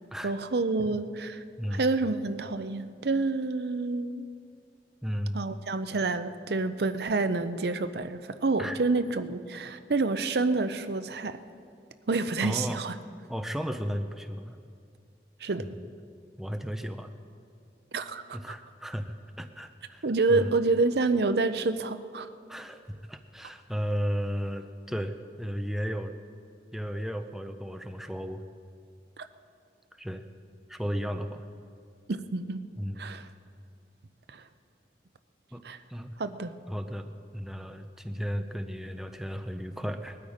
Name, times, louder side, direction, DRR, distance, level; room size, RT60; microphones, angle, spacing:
voice 1, 0.2-1.4 1.7-4.2 5.3-11.4 12.1-12.9 15.4-15.7 17.9-18.4 20.0-22.3 29.2-29.3 32.1-32.6 33.0-33.3 34.3-34.4 35.6-35.8 36.2-36.5, right 3 dB, 70° right, 11 dB, 0.6 m, -28 dB
voice 2, 5.0-5.4 8.6-8.8 12.4-12.8 13.3-14.6 15.6-15.9 16.4-17.1 18.3-20.5 22.5-26.1 26.7-28.4 30.0-30.2 30.7-31.4 32.8-33.1 35.5-35.6 35.9-36.2 36.7-37.1 37.3-40.2, equal, ahead, 7 dB, 0.5 m, -34 dB
20.0 x 12.5 x 5.0 m, 2.4 s
head